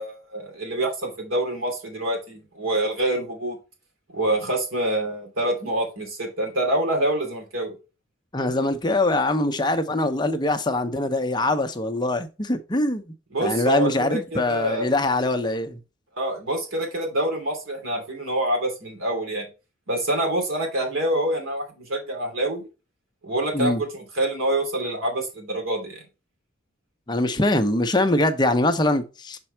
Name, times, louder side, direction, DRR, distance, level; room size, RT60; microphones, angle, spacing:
voice 1, 0.0-3.6 4.1-7.8 13.3-14.9 16.2-19.5 19.9-22.7 23.2-26.0, right 1 dB, 90° right, 2.8 m, -26 dB
voice 2, 8.3-13.1 13.4-15.8 23.5-23.8 27.1-29.4, left 2 dB, 20° left, 0.6 m, -23 dB
6.1 x 4.3 x 4.4 m
head